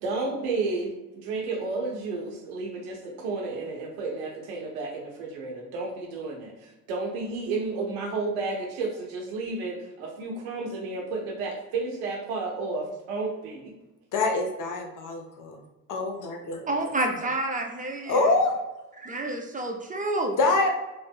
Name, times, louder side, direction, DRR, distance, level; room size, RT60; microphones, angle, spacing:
voice 1, 0.0-13.7, right 3 dB, 90° right, 0 dB, 0.8 m, -32 dB
voice 2, 14.1-15.6 15.9-16.9 18.1-18.5 20.4-20.7, left 3 dB, 50° left, 2 dB, 0.8 m, -25 dB
voice 3, 16.7-18.2 19.0-20.4, right 2 dB, 20° right, 2 dB, 0.5 m, -29 dB
3.0 x 2.0 x 3.5 m, 1.0 s
hypercardioid pair, 65°, 41 cm